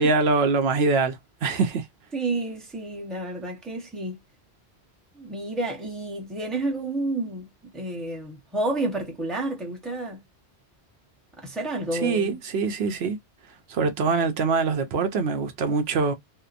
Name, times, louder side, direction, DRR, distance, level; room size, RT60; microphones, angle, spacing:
voice 1, 0.0-1.9 11.9-13.2 13.7-16.1, right 4 dB, 70° right, 0.8 m, -24 dB
voice 2, 2.1-4.2 5.1-10.2 11.4-12.4, right 2 dB, ahead, 0.7 m, -30 dB
2.8 x 2.1 x 2.4 m
omnidirectional pair, 1.1 m